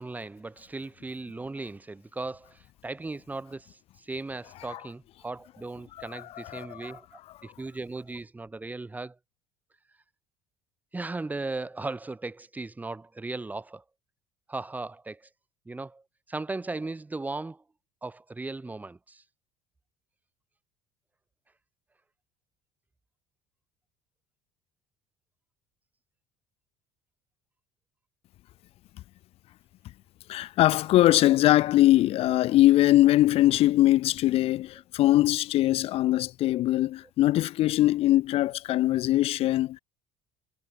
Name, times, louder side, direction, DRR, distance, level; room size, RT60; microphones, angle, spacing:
voice 1, 0.0-7.1 7.4-9.2 10.9-13.8 14.5-15.3 15.6-16.0 16.3-17.6 18.0-19.2, right 3 dB, 15° right, 1.4 m, -37 dB
voice 2, 6.0-6.9 30.3-39.8, left 15 dB, 60° left, 0.7 m, -22 dB
supercardioid pair, 95°, 12 cm